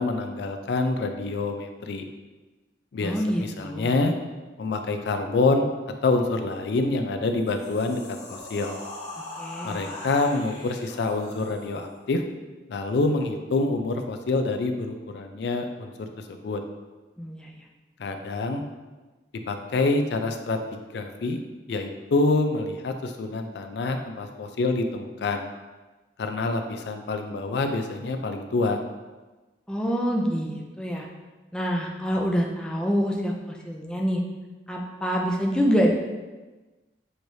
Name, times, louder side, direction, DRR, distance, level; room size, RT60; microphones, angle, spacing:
voice 1, 0.0-2.0 2.9-4.1 4.6-5.7 6.0-8.7 9.6-12.2 12.7-16.6 18.0-18.7 19.5-20.6 20.9-21.4 21.7-25.4 26.2-28.8, left 3 dB, 65° left, 6 dB, 0.4 m, -26 dB
voice 2, 3.0-3.9 9.4-9.8 17.2-17.5 29.7-31.1 31.5-34.2 34.7-35.9, equal, 5° left, -1 dB, 0.4 m, -26 dB
sound 1, 7.3-11.9, left 2 dB, 40° left, 1.0 m, -40 dB
6.3 x 3.1 x 2.7 m, 1.2 s
head